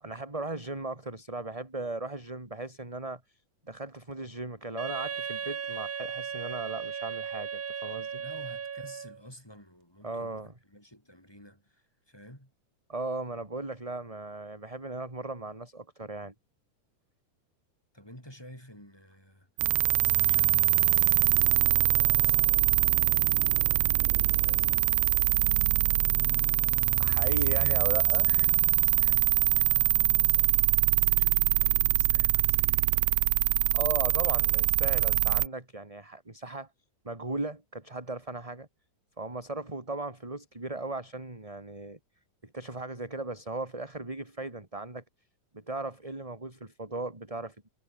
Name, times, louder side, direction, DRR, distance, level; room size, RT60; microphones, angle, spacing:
voice 1, 0.0-3.2 3.7-8.2 10.0-10.5 12.9-16.3 27.0-28.3 33.7-36.7 37.0-38.7 39.2-42.0 42.5-45.0 45.5-47.7, right 2 dB, 10° right, 3.0 m, -37 dB
Wind instrument woodwind instrument, 4.8-9.2, right 7 dB, 50° right, 1.0 m, -36 dB
voice 2, 8.2-12.5 17.9-21.1 21.9-22.9 23.6-25.5 26.9-33.0, equal, 5° left, 8.0 m, -51 dB
sound 1, 19.6-35.5, right 17 dB, 75° right, 1.7 m, -24 dB
omnidirectional pair, 3.6 m